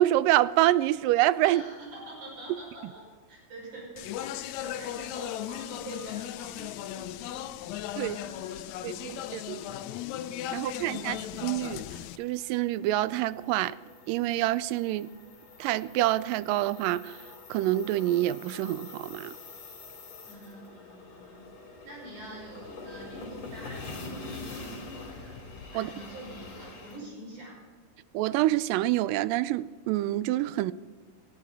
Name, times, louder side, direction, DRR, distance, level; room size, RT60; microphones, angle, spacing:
voice 1, 0.0-1.6 8.0-8.2 8.8-9.6 10.5-11.9 12.2-13.8 14.1-15.1 15.6-19.4 25.7-25.9 28.1-30.7, right 15 dB, 90° right, 17 dB, 2.2 m, -27 dB
voice 2, 1.4-9.9 10.5-11.4 20.3-25.4 25.7-27.6, right 1 dB, 65° right, -3 dB, 7.3 m, -46 dB
Speech, 4.0-12.2, left 12 dB, 80° left, 1.6 m, -37 dB
sound 1, 10.5-27.0, left 3 dB, 50° left, 4.0 m, -45 dB
18.0 x 14.0 x 4.0 m, 1.5 s
omnidirectional pair, 3.8 m